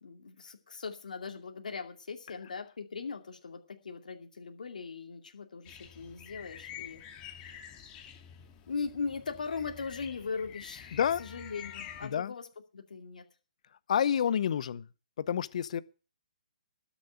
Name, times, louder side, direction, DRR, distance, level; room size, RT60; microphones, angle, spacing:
voice 1, 0.0-7.0 7.3-7.6 8.7-12.5 12.7-13.2, left 5 dB, 75° left, 2.5 m, -39 dB
sound 1, 5.7-12.1, left 9 dB, 25° left, 2.5 m, -48 dB
voice 2, 12.0-12.3 13.9-14.9 15.2-15.8, left 8 dB, 55° left, 0.8 m, -29 dB
13.0 x 7.2 x 8.0 m
hypercardioid pair, 145°, 4 cm